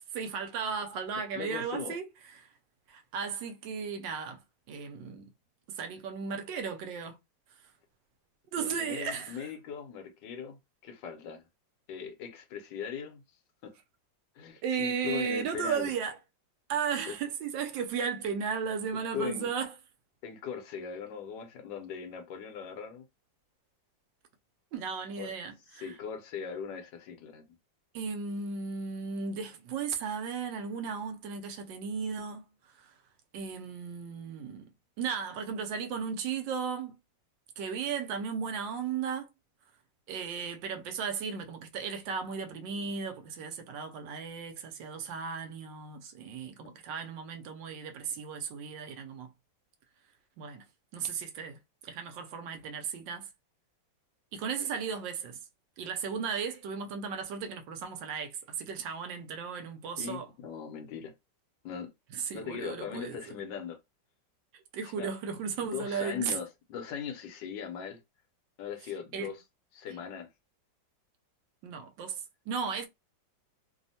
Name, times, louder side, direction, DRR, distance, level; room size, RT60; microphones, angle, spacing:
voice 1, 0.1-2.1 2.9-4.4 4.7-5.3 5.7-7.2 8.5-9.5 14.6-16.2 16.7-19.7 24.7-25.9 27.9-32.4 32.8-32.9 33.3-34.7 35.0-37.0 37.6-39.3 40.1-49.3 50.4-50.6 50.9-51.6 51.8-53.3 54.3-55.4 55.8-60.3 62.1-63.2 64.7-66.4 69.1-69.3 71.6-72.9, right 6 dB, 80° right, 1.2 m, -35 dB
voice 2, 1.3-2.0 8.6-11.4 11.9-13.2 13.6-13.8 14.3-15.9 17.1-17.2 19.1-19.5 20.2-23.0 25.2-25.3 25.7-27.4 60.0-61.1 61.6-61.9 62.3-63.8 64.8-65.1 65.6-68.0 68.6-69.4 69.7-70.3, left 7 dB, 75° left, 1.3 m, -39 dB
3.3 x 2.1 x 2.6 m
omnidirectional pair, 2.0 m